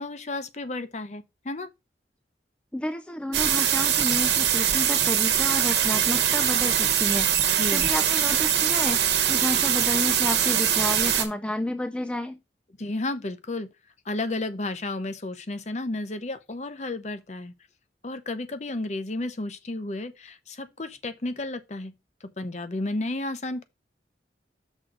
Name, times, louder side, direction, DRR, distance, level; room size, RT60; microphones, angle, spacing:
voice 1, 0.0-1.7 7.5-7.9 12.8-13.7 14.0-17.5 18.0-21.9 22.2-23.6, left 2 dB, 40° left, 0.7 m, -32 dB
voice 2, 2.7-12.4, left 1 dB, 5° left, 0.4 m, -31 dB
sound 1, 3.3-11.2, right 9 dB, 70° right, 1.2 m, -22 dB
6.2 x 3.8 x 6.2 m
head